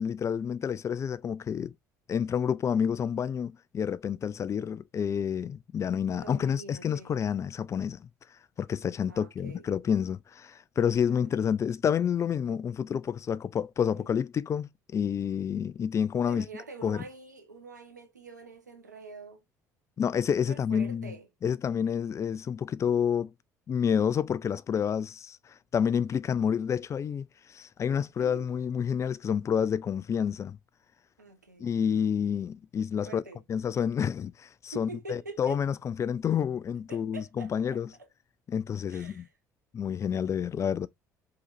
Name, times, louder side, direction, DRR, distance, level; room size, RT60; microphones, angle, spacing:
voice 1, 0.0-1.7 2.1-8.1 8.6-16.4 16.8-17.0 20.0-21.1 21.4-23.3 23.7-30.6 31.6-33.2 33.5-37.9 38.5-39.2 39.7-40.9, left 7 dB, 35° left, 0.4 m, -29 dB
voice 2, 6.1-7.2 9.1-9.6 11.0-11.3 14.0-14.1 16.2-19.4 20.4-21.3 28.2-28.5 31.2-31.7 33.0-33.4 34.7-35.6 36.9-38.1 38.9-39.3, right 3 dB, 90° right, 1.1 m, -45 dB
4.8 x 3.9 x 2.5 m
figure-of-eight pair, 55°, 9 cm